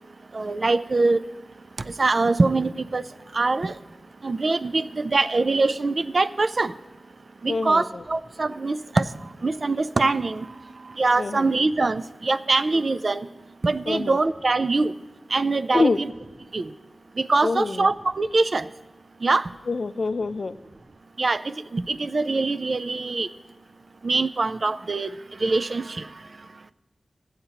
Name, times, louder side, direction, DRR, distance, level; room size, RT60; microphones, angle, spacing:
voice 1, 0.3-1.2 2.0-3.0 3.3-3.7 4.2-6.7 7.4-9.0 9.4-10.5 11.0-13.2 13.6-14.9 15.3-16.1 16.5-16.6 17.2-18.6 19.2-19.4 21.2-21.4 21.7-23.3 24.0-25.1 25.4-25.8, right 3 dB, 55° right, 13 dB, 0.3 m, -23 dB
voice 2, 7.5-8.0 11.2-11.5 13.9-14.2 15.7-16.0 17.4-17.9 19.7-20.6, left 3 dB, 65° left, 13 dB, 0.4 m, -25 dB
16.5 x 7.9 x 2.8 m, 1.2 s
wide cardioid pair, 85°, 0 cm